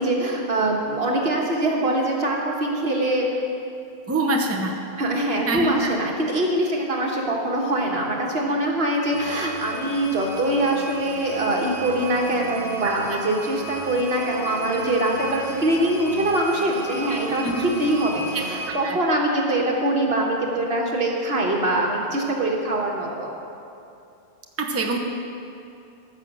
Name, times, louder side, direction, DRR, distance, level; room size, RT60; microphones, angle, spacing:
voice 1, 0.0-3.3 5.0-23.3, right 1 dB, 70° right, -1 dB, 1.7 m, -23 dB
voice 2, 4.1-4.7 5.5-5.9 12.8-13.2 14.7-15.0 17.1-17.6 18.3-19.0 24.6-25.0, right 2 dB, 15° right, 1 dB, 0.8 m, -26 dB
sound 1, 9.1-18.7, right 1 dB, 40° right, 1.3 m, -35 dB
15.0 x 6.4 x 6.3 m, 2.7 s
omnidirectional pair, 1.1 m